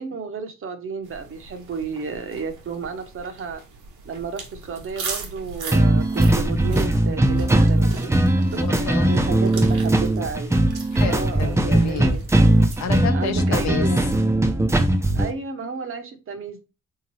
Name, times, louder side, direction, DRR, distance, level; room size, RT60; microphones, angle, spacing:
voice 1, 0.0-3.6 4.0-8.1 9.1-10.5 11.1-12.2 13.1-14.1 15.1-16.6, right 5 dB, 45° right, 0.7 m, -32 dB
sound 1, 1.0-12.9, right 3 dB, 80° right, 1.1 m, -39 dB
sound 2, 5.7-15.3, right 1 dB, 10° right, 0.4 m, -19 dB
voice 2, 8.5-9.3 10.9-12.2 12.8-13.9, left 6 dB, 65° left, 0.7 m, -30 dB
3.6 x 2.8 x 3.0 m
cardioid pair, 90°, 30 cm